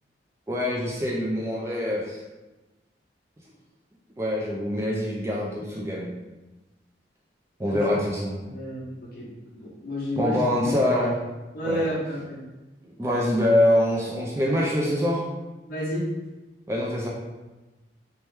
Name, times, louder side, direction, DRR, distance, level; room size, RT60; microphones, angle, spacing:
voice 1, 0.5-2.2 4.2-6.1 7.6-8.3 10.2-11.2 11.6-11.8 12.8-15.3 16.7-17.1, left 1 dB, 15° right, -4 dB, 0.3 m, -24 dB
voice 2, 8.4-10.7 11.5-12.4 15.6-16.0, equal, 55° left, -7 dB, 1.0 m, -31 dB
2.9 x 2.2 x 3.2 m, 1.1 s
head